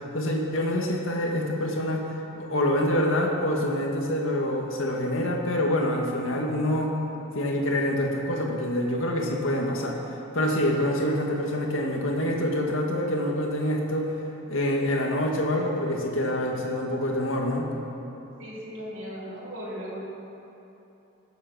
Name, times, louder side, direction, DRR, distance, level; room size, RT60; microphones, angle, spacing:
voice 1, 0.1-2.1 2.4-7.0 7.3-14.1 14.5-17.7, left 1 dB, 80° left, 0 dB, 2.0 m, -26 dB
voice 2, 18.4-20.0, equal, 80° right, -5 dB, 3.3 m, -37 dB
19.5 x 8.2 x 6.3 m, 3.0 s
head